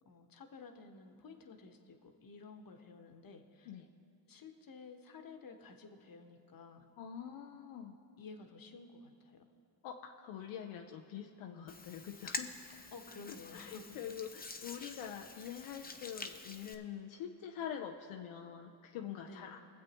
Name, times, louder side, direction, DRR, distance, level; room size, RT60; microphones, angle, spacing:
voice 1, 0.0-3.7 4.3-6.9 8.2-9.5 12.9-14.0 19.2-19.6, left 4 dB, 45° left, 5 dB, 1.2 m, -53 dB
voice 2, 7.0-8.0 9.8-12.5 13.3-19.6, left 9 dB, 80° left, 2 dB, 0.7 m, -45 dB
Hands, 11.7-16.7, left 3 dB, 20° left, 0.7 m, -47 dB
22.5 x 7.5 x 3.0 m, 2.5 s
supercardioid pair, 55°, 47 cm